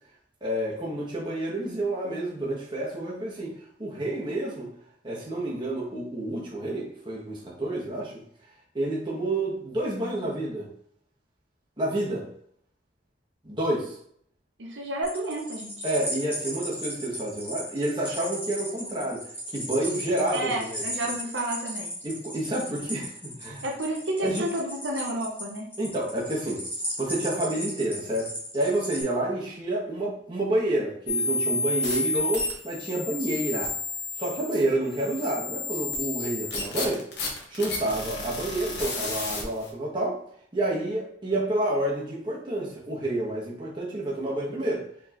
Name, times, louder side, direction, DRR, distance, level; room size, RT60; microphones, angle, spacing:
voice 1, 0.4-3.5 3.8-4.7 5.0-8.1 8.7-10.7 11.8-12.3 13.4-14.0 15.8-19.2 19.5-20.9 22.0-23.6 24.2-24.5 25.8-26.6 27.0-33.7 34.2-37.0 37.5-40.2 40.5-44.8, right 1 dB, 25° right, -4 dB, 1.3 m, -29 dB
voice 2, 14.6-15.7 20.3-21.9 23.6-25.7, right 1 dB, 75° right, -1 dB, 0.8 m, -31 dB
sound 1, 15.0-29.0, equal, 10° left, 1.5 m, -36 dB
sound 2, 31.1-39.7, left 2 dB, 60° left, 1.1 m, -31 dB
4.6 x 3.6 x 3.0 m, 0.65 s
head